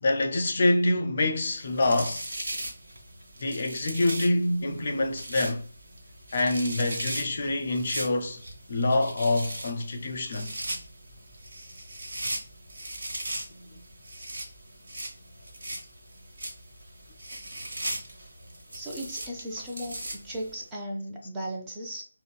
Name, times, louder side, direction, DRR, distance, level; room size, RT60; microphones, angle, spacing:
voice 1, 0.0-2.3 3.4-5.7 6.3-8.4 8.7-10.5 13.5-13.8, left 2 dB, 45° left, 0.4 m, -26 dB
sound 1, 1.4-20.6, right 1 dB, 60° right, 1.0 m, -39 dB
voice 2, 18.7-22.0, right 1 dB, 15° right, 0.5 m, -36 dB
3.7 x 2.1 x 2.3 m
figure-of-eight pair, 155°, 0 cm